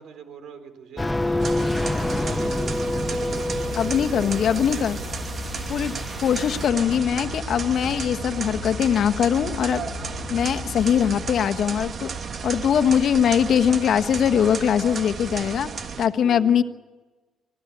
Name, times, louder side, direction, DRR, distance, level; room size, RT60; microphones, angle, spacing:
voice 1, 0.0-5.4 16.2-16.6, right 6 dB, 75° right, 9 dB, 4.0 m, -43 dB
sound 1, 1.0-6.7, left 1 dB, 10° left, 0.6 m, -28 dB
sound 2, 1.4-16.1, right 5 dB, 50° right, 1.5 m, -33 dB
sound 3, 1.6-11.5, left 7 dB, 50° left, 1.5 m, -38 dB
voice 2, 3.8-5.0 5.7-6.0 6.2-9.8 10.3-12.1 12.4-15.7 16.0-16.6, left 8 dB, 65° left, 9 dB, 1.3 m, -21 dB
25.5 x 16.0 x 9.8 m, 1.2 s
cardioid pair, 90°, 0 cm